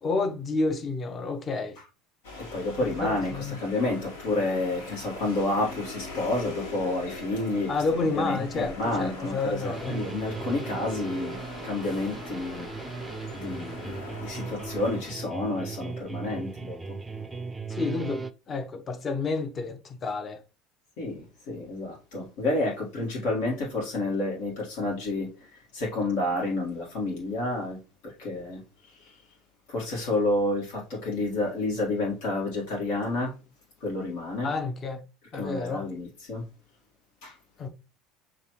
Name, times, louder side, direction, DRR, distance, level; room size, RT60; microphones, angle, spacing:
voice 1, 0.0-1.8 2.8-3.6 7.7-10.0 17.7-20.4 34.4-35.0 35.3-35.8 37.6-37.7, left 3 dB, 35° left, 0.8 m, -30 dB
sound 1, 2.2-15.1, left 2 dB, 85° left, 1.5 m, -42 dB
voice 2, 2.4-7.8 8.1-12.7 13.3-17.3 21.0-29.2 29.7-33.3 33.8-34.5 35.3-36.5 37.2-37.4, left 2 dB, 70° left, 1.7 m, -30 dB
sound 2, 9.6-18.3, right 4 dB, 15° right, 0.4 m, -37 dB
6.6 x 2.5 x 3.0 m
hypercardioid pair, 85°, 0 cm